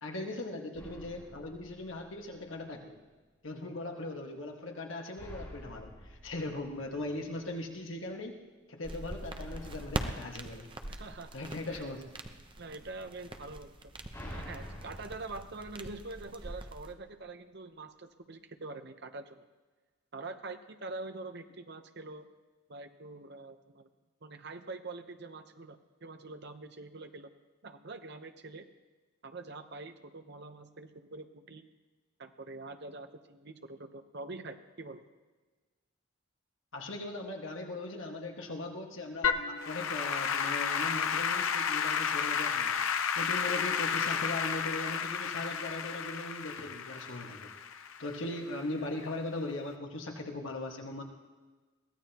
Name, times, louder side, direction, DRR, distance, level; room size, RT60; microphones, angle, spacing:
voice 1, 0.0-3.0 3.4-8.4 8.7-10.7 11.3-12.0 36.7-47.5 48.0-51.0, left 2 dB, 70° left, 1 dB, 1.7 m, -39 dB
sound 1, 0.7-2.6 5.2-7.6 9.4-11.7 13.6-16.7, equal, 15° left, 4.6 m, -49 dB
sound 2, 8.8-16.9, right 1 dB, 25° right, 0.8 m, -42 dB
voice 2, 10.9-11.3 11.7-11.8 12.6-13.9 14.3-19.5 20.1-22.2 22.7-23.9 24.2-27.3 27.6-28.6 29.2-31.6 32.2-35.0, right 3 dB, 55° right, 7 dB, 0.9 m, -45 dB
Applause / Keyboard (musical), 39.2-48.6, left 7 dB, 85° left, 0.7 m, -32 dB
22.0 x 16.0 x 3.0 m, 1.3 s
head